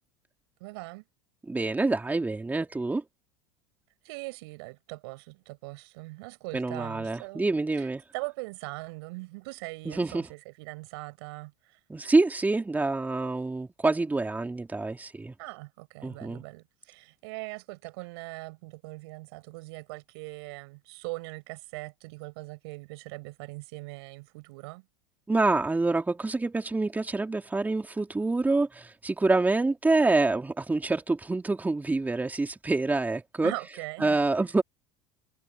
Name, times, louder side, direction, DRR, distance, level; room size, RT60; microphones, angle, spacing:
voice 1, 0.6-1.0 4.0-7.5 7.8-7.9 8.1-11.8 15.4-24.9 33.4-34.2, right 26 dB, 70° right, 5.6 m, -41 dB
voice 2, 1.5-3.0 6.5-8.0 9.8-10.3 11.9-15.3 16.0-16.4 25.3-33.5 34.0-34.6, right 3 dB, 10° right, 3.4 m, -26 dB
hypercardioid pair, 90°, 14 cm